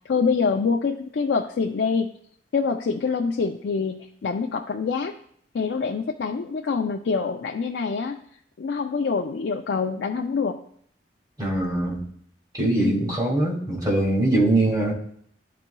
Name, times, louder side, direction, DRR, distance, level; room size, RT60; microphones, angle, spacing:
voice 1, 0.1-2.1 2.5-5.1 5.5-8.2 8.6-10.6 12.8-13.2, left 5 dB, 65° left, 3 dB, 0.4 m, -25 dB
voice 2, 11.4-12.0 12.5-14.9, right 2 dB, 20° right, -3 dB, 1.8 m, -22 dB
12.0 x 4.2 x 2.3 m, 0.64 s
head